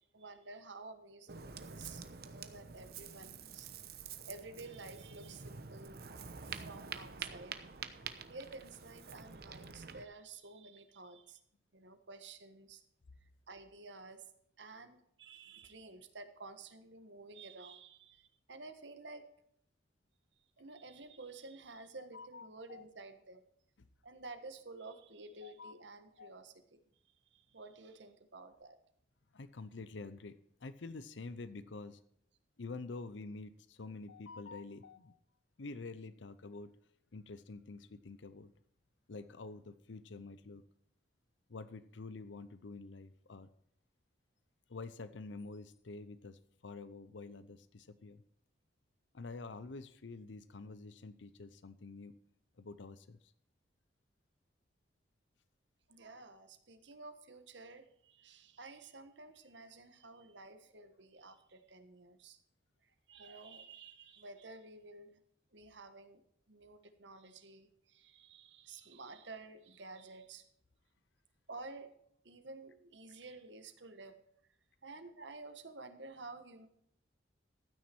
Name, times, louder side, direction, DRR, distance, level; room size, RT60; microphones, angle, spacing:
voice 1, 0.0-3.7 4.3-6.0 6.4-7.7 8.3-11.4 11.7-12.8 13.2-14.3 14.6-19.3 20.6-23.4 24.0-28.8 55.9-62.4 62.8-65.2 65.5-66.2 66.5-70.5 71.5-71.9 72.2-74.2 74.8-76.7, right 3 dB, 75° right, 9 dB, 1.5 m, -52 dB
Ocean, 1.3-10.0, right 6 dB, 55° right, 1.0 m, -47 dB
voice 2, 22.0-22.8 25.4-25.7 26.2-26.3 29.3-32.0 32.6-35.2 35.6-36.7 37.1-38.5 39.1-40.6 41.5-43.5 44.7-48.2 49.1-52.1 52.6-53.3, left 3 dB, 80° left, 14 dB, 0.7 m, -48 dB
13.5 x 9.4 x 4.5 m, 0.70 s
head